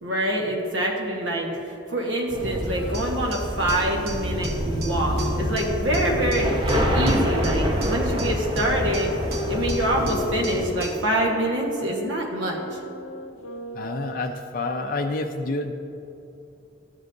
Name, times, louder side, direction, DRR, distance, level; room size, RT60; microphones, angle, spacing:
voice 1, 0.0-9.1 9.5-12.8, right 1 dB, 85° right, 0 dB, 1.3 m, -26 dB
Wind instrument woodwind instrument, 1.9-7.7 8.5-14.3, left 2 dB, 85° left, 0.6 m, -36 dB
sound 1, 2.3-10.6, equal, 25° right, 0.7 m, -27 dB
sound 2, 2.9-11.1, right 3 dB, 55° right, 0.9 m, -38 dB
voice 2, 13.7-15.7, left 2 dB, 45° left, 3 dB, 0.4 m, -28 dB
12.5 x 7.8 x 2.6 m, 2.8 s
head